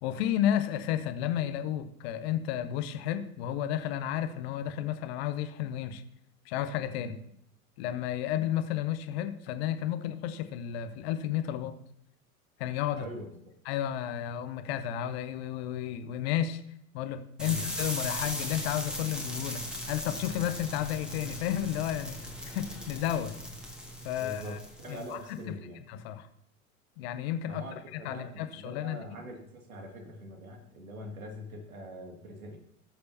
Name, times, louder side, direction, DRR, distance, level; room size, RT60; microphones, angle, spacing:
voice 1, 0.0-6.0 6.4-7.1 7.8-11.8 12.6-13.1 13.6-16.6 16.9-22.2 22.4-23.3 24.0-24.6 24.9-25.2 25.5-25.6 25.9-26.3 27.0-27.6 27.9-29.0, left 11 dB, 45° left, 10 dB, 1.0 m, -32 dB
voice 2, 13.0-13.3 17.4-17.6 24.2-25.8 27.5-32.6, equal, 70° right, 2 dB, 2.3 m, -43 dB
sound 1, 17.4-25.3, left 1 dB, ahead, 1.8 m, -38 dB
19.0 x 6.7 x 2.7 m, 0.71 s
figure-of-eight pair, 85°, 43 cm